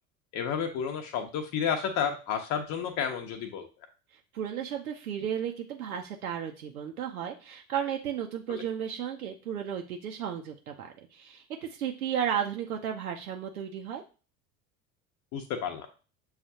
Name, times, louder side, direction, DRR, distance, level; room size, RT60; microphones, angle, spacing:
voice 1, 0.3-3.7 8.5-8.6 15.3-15.9, left 7 dB, 40° left, 3 dB, 0.8 m, -31 dB
voice 2, 4.3-14.0, right 9 dB, 80° right, 2 dB, 0.6 m, -34 dB
7.1 x 2.4 x 2.7 m, 0.34 s
figure-of-eight pair, 70°, 43 cm